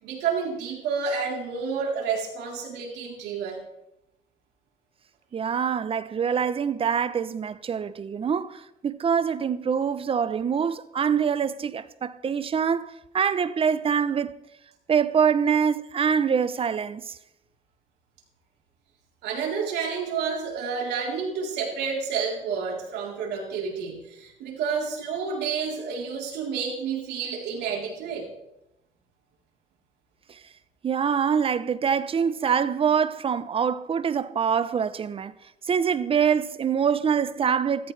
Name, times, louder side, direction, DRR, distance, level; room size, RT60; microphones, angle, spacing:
voice 1, 0.0-3.6 19.2-28.3, right 6 dB, 80° right, 3.7 m, -30 dB
voice 2, 5.3-14.3 14.9-17.2 30.8-35.3 35.7-37.9, right 7 dB, 35° right, 0.7 m, -25 dB
14.0 x 14.0 x 3.3 m
cardioid pair, 110°, 17 cm